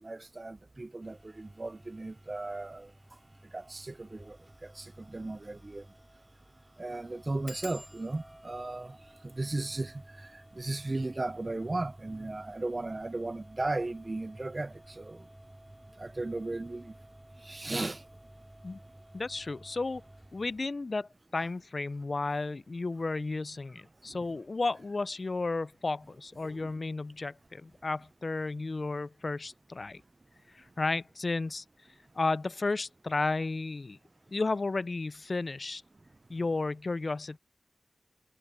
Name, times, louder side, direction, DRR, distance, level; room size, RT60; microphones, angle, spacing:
voice 1, 0.0-2.9 3.5-4.4 4.6-5.8 6.8-9.0 9.2-15.2 16.0-16.9 17.4-18.0 26.4-26.7, right 2 dB, 40° right, 0.4 m, -36 dB
sound 1, 1.0-20.6, right 1 dB, 15° right, 2.9 m, -55 dB
sound 2, 4.4-4.5 4.9-5.0 5.2-5.3 5.9-6.1 6.4-6.5 7.5-12.7 13.4-13.9 14.2-14.6 14.8-14.9, left 1 dB, 10° left, 2.5 m, -54 dB
voice 2, 19.1-20.0 20.3-30.0 30.5-31.6 32.1-34.0 34.3-35.8 36.3-37.4, left 3 dB, 55° left, 0.3 m, -33 dB
wide cardioid pair, 75°, 0 cm